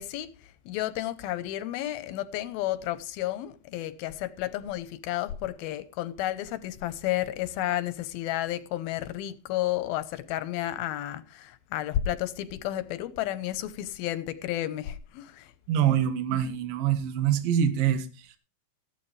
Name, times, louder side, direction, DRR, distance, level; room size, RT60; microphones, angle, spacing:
voice 1, 0.0-15.5 15.9-16.0 16.3-16.5, left 13 dB, 90° left, 2.8 m, -32 dB
voice 2, 15.7-18.4, right 9 dB, 75° right, 3.0 m, -25 dB
15.5 x 12.0 x 3.3 m
omnidirectional pair, 4.2 m